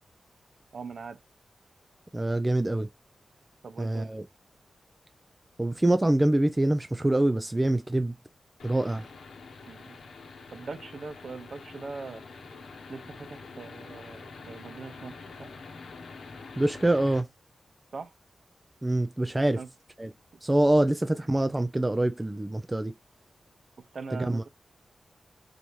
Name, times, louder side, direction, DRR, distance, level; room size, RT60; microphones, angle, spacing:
voice 1, 0.7-1.2 3.6-4.1 9.6-10.0 10.5-12.2 12.9-15.5 17.9-18.1 19.6-19.7 23.9-24.5, right 4 dB, 55° right, 0.7 m, -41 dB
voice 2, 2.1-2.9 3.8-4.2 5.6-8.2 8.6-9.1 16.6-17.3 18.8-19.6 20.0-20.1 20.4-22.9 24.1-24.4, right 1 dB, 15° right, 0.3 m, -25 dB
sound 1, 8.6-17.2, left 4 dB, 90° left, 0.9 m, -46 dB
4.1 x 3.4 x 3.0 m
wide cardioid pair, 145°, 0 cm